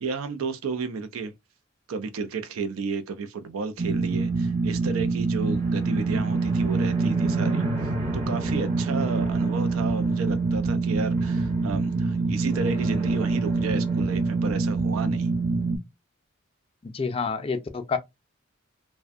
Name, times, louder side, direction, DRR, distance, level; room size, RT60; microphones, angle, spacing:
voice 1, 0.0-1.3 1.9-7.6 8.1-15.3, right 4 dB, 90° right, 0.4 m, -32 dB
sound 1, 3.8-15.8, right 3 dB, 35° right, 0.7 m, -25 dB
voice 2, 16.8-18.0, left 5 dB, 25° left, 0.4 m, -28 dB
2.5 x 2.1 x 2.4 m
head